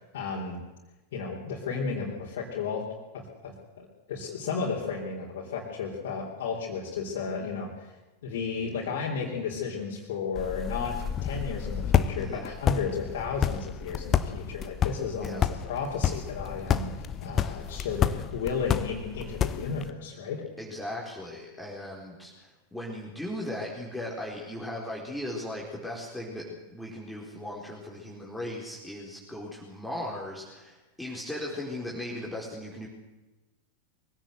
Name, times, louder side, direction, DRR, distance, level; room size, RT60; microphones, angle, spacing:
voice 1, 0.1-0.6 1.1-2.8 3.1-7.9 8.2-20.4, left 5 dB, 55° left, -3 dB, 3.8 m, -33 dB
sound 1, 10.3-19.9, left 8 dB, 25° left, 1.2 m, -29 dB
voice 2, 12.2-12.5 15.2-15.5 20.6-32.9, left 1 dB, 5° left, -3 dB, 4.4 m, -37 dB
23.0 x 16.5 x 8.1 m, 1.1 s
figure-of-eight pair, 90°, 0 cm